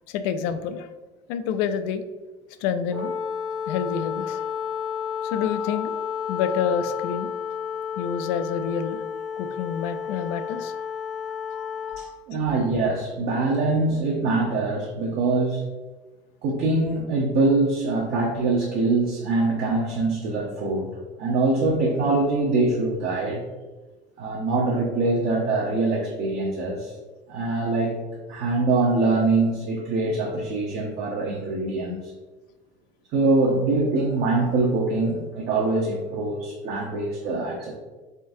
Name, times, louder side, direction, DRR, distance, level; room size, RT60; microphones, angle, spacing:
voice 1, 0.1-0.9 1.3-2.0 2.6-3.1 3.7-4.4 5.2-5.9 6.3-7.3 8.0-9.0 9.4-10.7 11.5-12.1, left 7 dB, 90° left, 10 dB, 0.4 m, -28 dB
Wind instrument woodwind instrument, 2.9-12.1, left 7 dB, 5° right, 0.7 m, -31 dB
voice 2, 12.0-15.7 16.4-23.4 24.2-26.9 27.3-28.0 28.3-32.1 33.1-37.8, right 3 dB, 55° right, -2 dB, 0.7 m, -24 dB
3.7 x 3.6 x 2.6 m, 1.2 s
cardioid pair, 150°, 19 cm